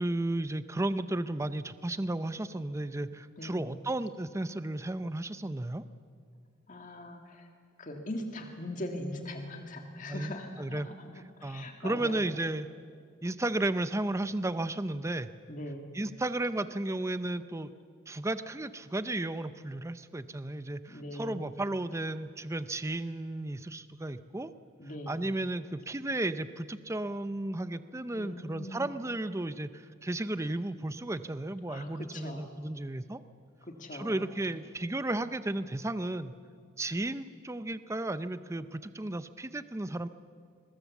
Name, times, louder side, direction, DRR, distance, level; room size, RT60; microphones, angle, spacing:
voice 1, 0.0-5.8 10.1-10.9 11.4-12.7 13.2-15.3 15.9-17.7 18.1-24.5 25.1-33.2 33.9-36.3 36.8-40.1, right 1 dB, 15° right, 12 dB, 0.5 m, -34 dB
voice 2, 3.4-3.8 6.7-7.5 7.8-12.2 15.5-15.9 20.9-21.5 24.8-25.2 28.2-28.9 31.7-32.5 33.6-34.3, left 1 dB, 40° left, 3 dB, 1.8 m, -41 dB
22.5 x 20.5 x 7.2 m, 2.1 s
head